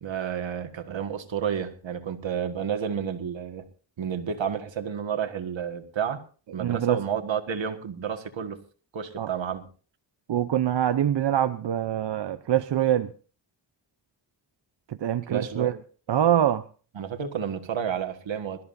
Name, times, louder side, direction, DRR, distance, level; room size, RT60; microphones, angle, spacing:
voice 1, 0.0-3.7 4.0-6.2 6.5-8.6 8.9-9.7 15.3-15.7 17.0-18.6, right 8 dB, 85° right, 1.7 m, -31 dB
voice 2, 6.6-7.0 9.2-9.3 10.3-13.1 14.9-15.7 16.1-16.6, right 10 dB, 70° right, 0.7 m, -24 dB
23.5 x 13.5 x 2.6 m
cardioid pair, 75°, 45 cm